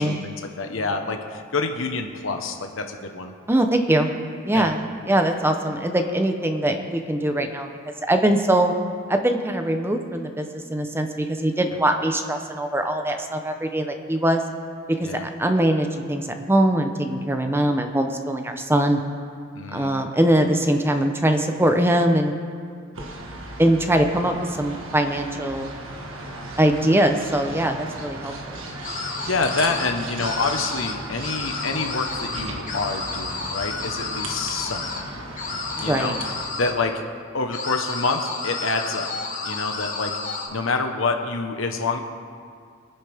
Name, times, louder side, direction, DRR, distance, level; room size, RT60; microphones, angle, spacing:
voice 1, 0.2-3.3 4.5-4.7 15.0-15.2 19.5-19.9 28.9-34.9 35.8-36.1 36.6-37.0 37.3-39.1 39.5-42.0, left 3 dB, 80° left, 5 dB, 1.2 m, -27 dB
voice 2, 3.5-4.1 4.4-7.7 8.1-8.7 9.1-14.4 15.0-19.0 19.7-22.3 23.6-25.7 26.6-28.6 35.8-36.1, right 1 dB, 10° right, 5 dB, 0.8 m, -22 dB
sound 1, 22.9-36.5, right 2 dB, 85° right, 1.6 m, -36 dB
sound 2, 28.8-29.9 30.2-30.9 31.2-35.0 35.4-36.7 37.5-40.5, left 3 dB, 40° left, 2.0 m, -31 dB
23.5 x 10.0 x 3.6 m, 2.3 s
head